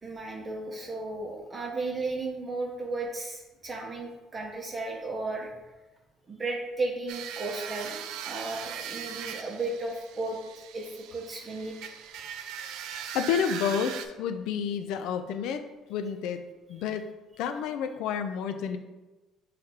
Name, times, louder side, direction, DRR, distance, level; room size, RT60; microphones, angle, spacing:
voice 1, 0.0-5.5 6.3-10.4 10.7-11.9, right 2 dB, 25° right, 0 dB, 0.8 m, -34 dB
sound 1, 7.1-14.1, right 8 dB, 80° right, 0.4 m, -39 dB
voice 2, 13.1-15.6 15.9-16.4 16.7-17.1 17.4-18.8, left 7 dB, 80° left, 8 dB, 0.4 m, -30 dB
5.8 x 3.3 x 2.8 m, 1.1 s
cardioid pair, 105°, 0 cm